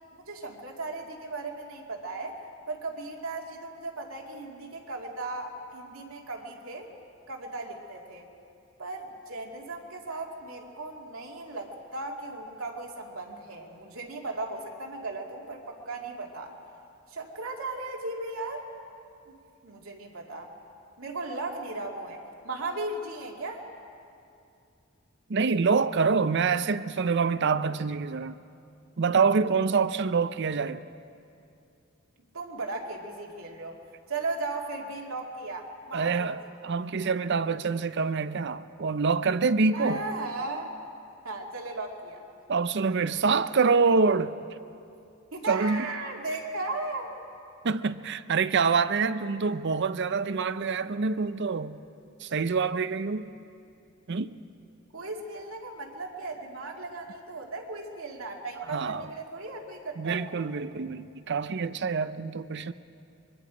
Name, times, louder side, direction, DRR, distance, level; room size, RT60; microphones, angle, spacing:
voice 1, 0.2-2.4 2.7-6.9 7.3-8.3 8.8-16.5 17.1-18.7 19.3-19.4 19.6-20.5 21.0-23.6 32.3-33.8 34.1-36.3 37.3-37.4 39.7-40.7 41.2-42.2 45.3-47.1 54.9-60.2, right 2 dB, 85° right, 2.4 m, -36 dB
voice 2, 25.3-28.4 29.0-30.8 35.9-40.0 42.5-44.4 45.5-45.9 47.6-51.8 52.2-53.3 54.1-54.4 58.7-59.1 60.0-62.7, right 5 dB, 55° right, 0.6 m, -26 dB
24.5 x 22.5 x 5.0 m
head